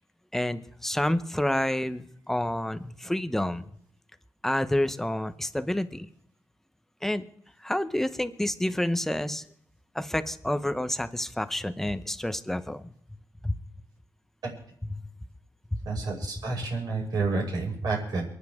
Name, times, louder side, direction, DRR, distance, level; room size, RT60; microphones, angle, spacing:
voice 1, 0.3-3.7 4.4-6.1 7.0-7.2 7.6-9.5 9.9-12.9 13.4-13.6 14.9-15.0 15.7-15.8, left 1 dB, 5° left, 10 dB, 0.7 m, -29 dB
voice 2, 15.9-18.2, right 3 dB, 60° right, -1 dB, 5.8 m, -29 dB
28.5 x 9.8 x 3.6 m, 0.71 s
wide cardioid pair, 145°, 8 cm